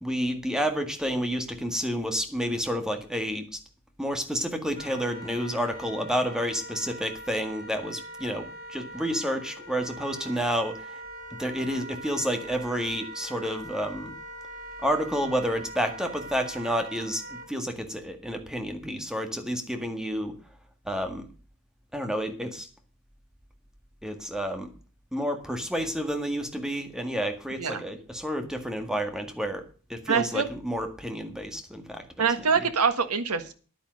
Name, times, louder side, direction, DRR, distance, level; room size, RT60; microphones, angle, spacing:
voice 1, 0.0-3.6 4.0-10.8 11.4-14.1 14.8-20.3 20.9-21.3 21.9-22.7 24.0-24.7 25.1-32.3 32.6-32.7, equal, 5° right, 6 dB, 1.8 m, -30 dB
Wind instrument woodwind instrument, 4.7-17.5, right 1 dB, 45° right, 6.0 m, -42 dB
voice 2, 30.1-30.5 32.2-33.5, right 6 dB, 85° right, 10 dB, 1.5 m, -25 dB
10.5 x 9.2 x 6.4 m, 0.37 s
head